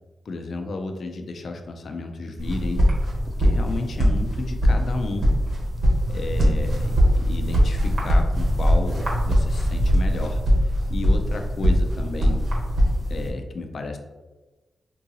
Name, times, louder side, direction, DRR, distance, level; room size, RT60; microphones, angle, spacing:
voice 1, 0.3-2.9 3.3-5.3 6.1-12.4 13.1-14.0, left 3 dB, 65° left, 4 dB, 0.4 m, -32 dB
sound 1, 2.4-13.3, equal, 75° right, 1.0 m, -21 dB
3.7 x 2.6 x 2.8 m, 1.2 s
cardioid pair, 80°, 0 cm